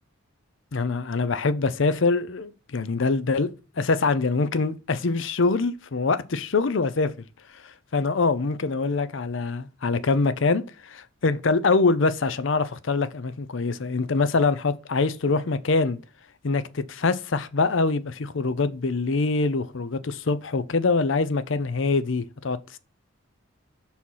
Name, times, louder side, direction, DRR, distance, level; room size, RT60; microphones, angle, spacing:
voice 1, 0.7-7.1 7.6-16.0 16.4-22.6, left 3 dB, 65° left, 0.6 m, -24 dB
6.2 x 4.3 x 5.5 m
head